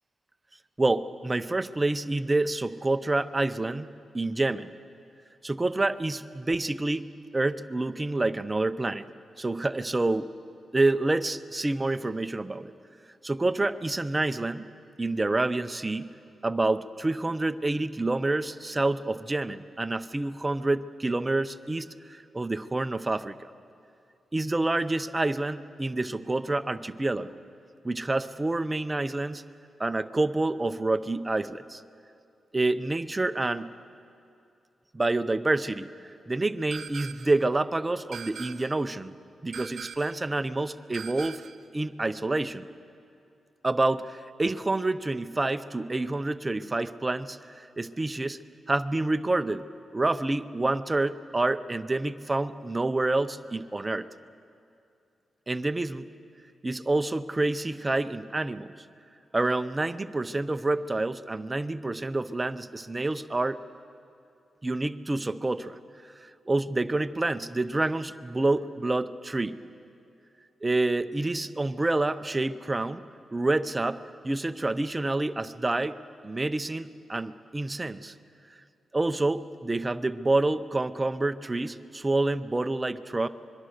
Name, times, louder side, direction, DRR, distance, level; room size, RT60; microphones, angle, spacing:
voice 1, 0.8-3.9 4.1-4.7 5.4-7.1 7.3-9.1 9.4-10.3 10.7-12.7 13.2-14.7 15.0-16.1 16.4-23.5 24.3-27.4 27.8-29.4 29.8-31.8 32.5-33.7 34.9-35.9 36.3-39.1 39.4-41.4 41.7-42.7 43.6-48.4 48.7-49.6 49.9-54.1 55.5-56.1 56.6-58.7 59.3-63.6 64.6-65.8 66.2-69.6 70.6-73.0 73.3-76.0 76.2-78.1 78.9-83.3, right 2 dB, 15° right, 12 dB, 0.5 m, -28 dB
sound 1, 36.7-37.4 38.1-38.9 39.5-40.3 40.9-41.7, right 7 dB, 65° right, 0.7 m, -41 dB
25.0 x 22.5 x 6.5 m, 2.6 s
wide cardioid pair, 165°, 0 cm